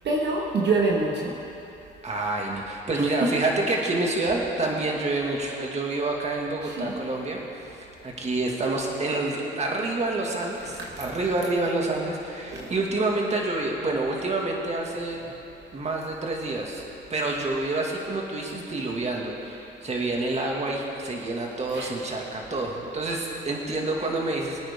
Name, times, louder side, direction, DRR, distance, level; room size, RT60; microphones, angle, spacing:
voice 1, 0.0-1.3 3.2-3.3 6.6-7.0 10.9-11.0 12.5-12.7 21.7-21.9, right 3 dB, 60° right, -3 dB, 1.8 m, -25 dB
voice 2, 2.0-15.2 15.7-16.8 17.1-24.6, right 2 dB, 35° right, -1 dB, 2.3 m, -28 dB
24.0 x 9.0 x 3.8 m, 2.9 s
cardioid pair, 90°, 20 cm